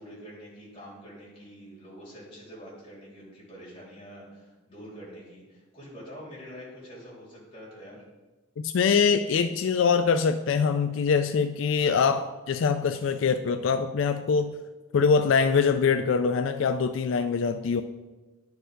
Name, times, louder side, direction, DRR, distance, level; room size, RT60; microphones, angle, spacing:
voice 1, 0.0-8.0, equal, 25° left, -6 dB, 3.2 m, -46 dB
voice 2, 8.6-14.6 14.9-17.8, left 5 dB, 75° left, 10 dB, 0.3 m, -24 dB
10.0 x 4.7 x 5.1 m, 1.2 s
head